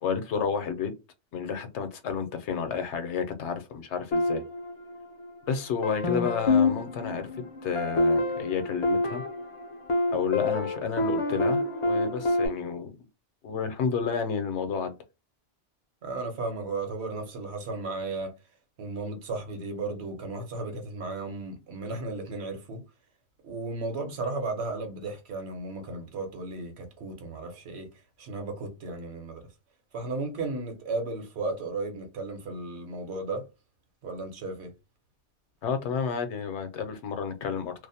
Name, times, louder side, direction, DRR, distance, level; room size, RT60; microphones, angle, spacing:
voice 1, 0.0-0.9 1.3-4.4 5.5-7.3 7.6-9.2 10.1-12.9 13.4-14.9 35.6-37.7, left 6 dB, 80° left, 0.9 m, -30 dB
sound 1, 4.1-5.4 5.8-12.5, left 2 dB, 45° left, 0.4 m, -27 dB
voice 2, 16.0-18.3 18.8-22.8 23.4-27.9 28.2-29.5 29.9-33.5 34.0-34.7, right 3 dB, 70° right, 1.0 m, -34 dB
2.5 x 2.0 x 2.6 m
omnidirectional pair, 1.2 m